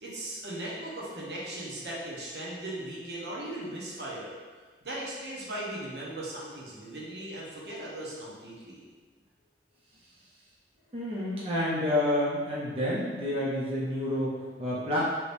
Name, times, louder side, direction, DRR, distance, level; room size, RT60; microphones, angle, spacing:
voice 1, 0.0-4.3 4.8-8.8, right 1 dB, 70° right, -6 dB, 0.8 m, -38 dB
voice 2, 10.9-15.0, left 1 dB, 35° right, -7 dB, 0.5 m, -29 dB
3.3 x 2.9 x 2.6 m, 1.5 s
head